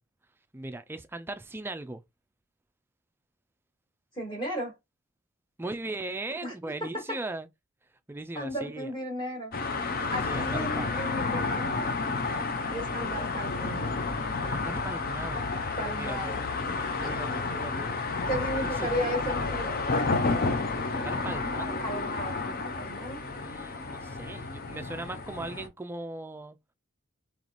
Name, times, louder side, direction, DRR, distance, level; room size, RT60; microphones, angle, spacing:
voice 1, 0.5-2.0 5.6-7.5 8.1-8.9 10.3-10.9 14.5-15.5 15.9-16.3 17.0-18.2 18.8-18.9 20.9-21.9 23.2-26.6, right 2 dB, 10° right, 0.3 m, -38 dB
voice 2, 4.1-4.7 6.4-6.5 6.8-7.2 8.3-9.5 10.1-11.9 12.7-13.9 15.8-16.4 17.0-17.1 18.3-19.7 21.8-23.2, equal, 20° left, 1.4 m, -34 dB
sound 1, 9.5-25.7, left 3 dB, 40° left, 0.5 m, -31 dB
3.1 x 3.1 x 4.0 m
head